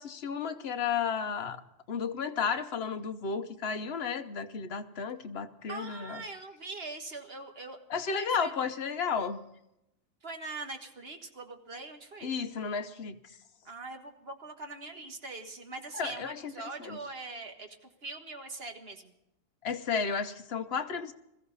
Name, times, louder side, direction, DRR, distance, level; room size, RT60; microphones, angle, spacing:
voice 1, 0.0-1.6 1.9-6.2 7.9-9.4 12.2-13.2 15.9-16.5 16.8-17.0 19.6-21.1, left 6 dB, 50° left, 8 dB, 1.1 m, -33 dB
voice 2, 5.7-7.8 8.1-8.5 10.2-12.3 13.6-19.1, right 3 dB, 45° right, 5 dB, 1.7 m, -42 dB
21.0 x 14.5 x 4.0 m, 0.85 s
omnidirectional pair, 1.4 m